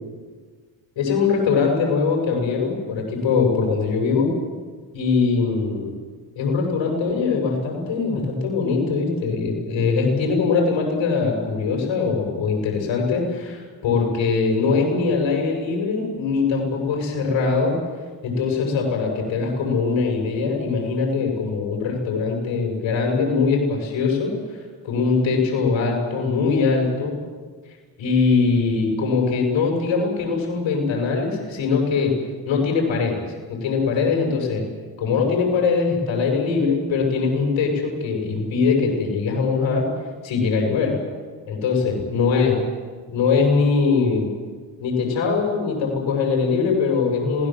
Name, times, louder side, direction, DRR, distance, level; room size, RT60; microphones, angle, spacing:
voice 1, 1.0-4.3 4.9-5.9 6.4-17.8 18.2-27.2 28.0-32.1 32.5-33.2 33.5-34.6 35.0-39.9 40.2-41.0 41.5-42.5 43.1-44.3 44.8-47.5, left 4 dB, 80° left, 1 dB, 7.1 m, -22 dB
27.0 x 18.5 x 7.6 m, 1.5 s
cardioid pair, 75°, 45 cm